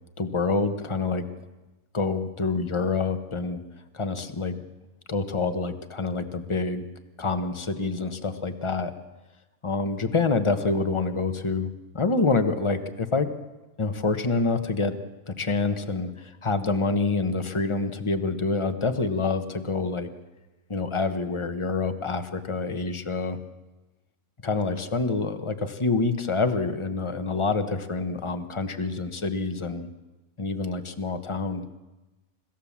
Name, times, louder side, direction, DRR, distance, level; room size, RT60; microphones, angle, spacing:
voice 1, 0.2-1.3 1.9-3.6 3.9-4.6 5.1-6.8 7.2-8.9 9.6-11.7 11.9-13.3 13.8-15.0 15.3-20.1 20.7-23.4 24.4-29.9 30.4-31.7, left 3 dB, 25° left, 8 dB, 1.2 m, -27 dB
25.5 x 15.0 x 7.4 m, 1.1 s
omnidirectional pair, 1.4 m